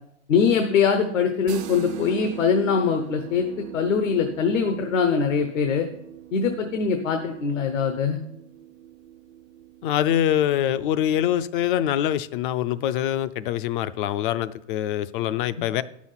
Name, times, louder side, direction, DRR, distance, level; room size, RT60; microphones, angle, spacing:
voice 1, 0.3-5.9 6.3-8.2, left 6 dB, 75° left, 6 dB, 1.1 m, -22 dB
sound 1, 1.5-11.1, right 10 dB, 60° right, 0.7 m, -42 dB
voice 2, 9.8-15.8, left 11 dB, 45° left, 15 dB, 0.5 m, -24 dB
9.4 x 6.2 x 5.7 m, 0.77 s
hypercardioid pair, 135°, 38 cm